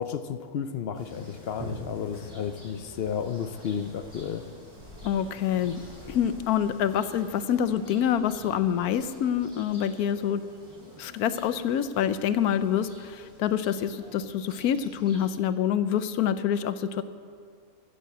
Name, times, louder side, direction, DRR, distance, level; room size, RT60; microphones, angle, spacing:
voice 1, 0.0-4.4, left 7 dB, 65° left, 10 dB, 0.6 m, -32 dB
sound 1, 0.9-15.3, equal, 15° right, 4.6 m, -47 dB
voice 2, 5.0-5.8 6.1-10.4 11.0-17.0, left 9 dB, 85° left, 12 dB, 1.2 m, -26 dB
15.0 x 7.7 x 8.0 m, 2.2 s
omnidirectional pair, 1.6 m